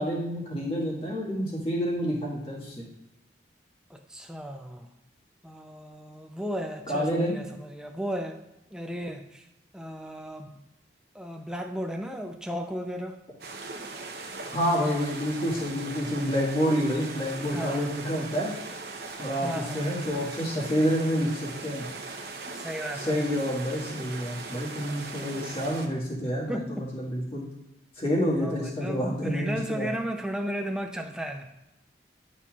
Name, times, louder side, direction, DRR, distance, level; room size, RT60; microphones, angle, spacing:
voice 1, 0.0-2.8 6.9-7.3 14.5-18.5 19.2-19.5 19.7-21.8 23.0-27.4 28.0-29.9, equal, 30° left, -5 dB, 1.7 m, -28 dB
voice 2, 3.9-4.9 5.4-8.4 8.7-9.5 9.7-10.6 11.1-13.2 17.5-18.1 19.4-20.1 22.5-23.3 26.5-26.9 28.4-31.5, equal, 5° right, 4 dB, 0.4 m, -35 dB
sound 1, 13.4-25.9, right 3 dB, 60° right, 0.8 m, -39 dB
10.5 x 4.2 x 2.4 m, 0.92 s
head